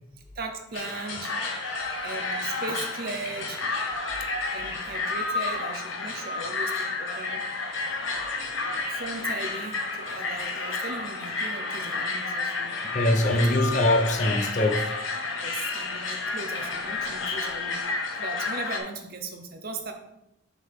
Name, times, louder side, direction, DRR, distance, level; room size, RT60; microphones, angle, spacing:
voice 1, 0.3-1.3 2.0-3.6 4.5-7.4 8.9-12.7 13.3-13.6 15.2-19.9, right 3 dB, 45° right, 4 dB, 0.8 m, -38 dB
sound 1, 0.7-18.8, left 3 dB, 70° left, 1.0 m, -31 dB
voice 2, 12.9-14.9, left 1 dB, 35° left, 4 dB, 0.6 m, -23 dB
6.2 x 5.6 x 3.6 m, 0.85 s
head